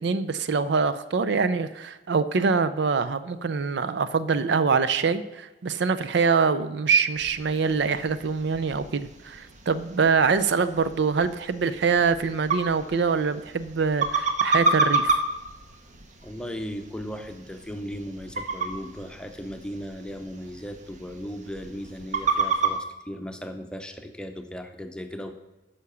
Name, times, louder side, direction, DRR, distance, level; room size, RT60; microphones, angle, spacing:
voice 1, 0.0-15.1, right 5 dB, 65° right, 13 dB, 0.5 m, -24 dB
sound 1, 7.1-22.8, right 3 dB, 40° right, 1.0 m, -31 dB
voice 2, 16.2-25.3, equal, 5° left, 6 dB, 0.7 m, -37 dB
9.6 x 5.8 x 6.8 m, 1.1 s
head